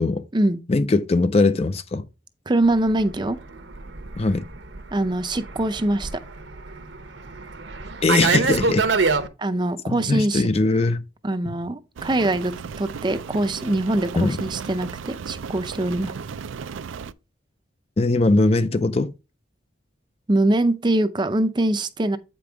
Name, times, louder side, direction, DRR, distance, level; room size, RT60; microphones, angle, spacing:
voice 1, 0.7-2.1 4.2-4.4 8.0-8.9 9.9-11.0 14.2-14.4 18.0-19.1, left 3 dB, 30° left, 0.4 m, -20 dB
voice 2, 2.5-3.4 4.9-6.1 9.4-10.4 11.2-16.1 20.3-22.2, right 1 dB, 25° right, 0.5 m, -23 dB
Fixed-wing aircraft airplane, 2.8-9.3, right 4 dB, 70° right, 0.9 m, -26 dB
Rain, 12.0-17.1, right 6 dB, 90° right, 0.4 m, -35 dB
8.4 x 5.2 x 3.4 m
head